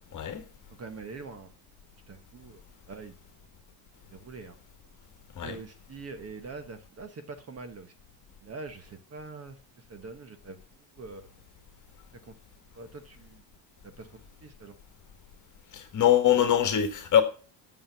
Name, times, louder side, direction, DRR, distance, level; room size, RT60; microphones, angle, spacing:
voice 1, 0.1-0.5 5.3-5.6 15.7-17.2, left 10 dB, 40° left, 1.7 m, -23 dB
voice 2, 0.7-1.5 2.1-3.2 4.1-4.6 5.4-7.9 8.4-11.3 12.2-12.3 12.7-13.4 13.8-14.8, right 4 dB, 30° right, 1.1 m, -44 dB
8.7 x 7.4 x 7.1 m
cardioid pair, 155°, 48 cm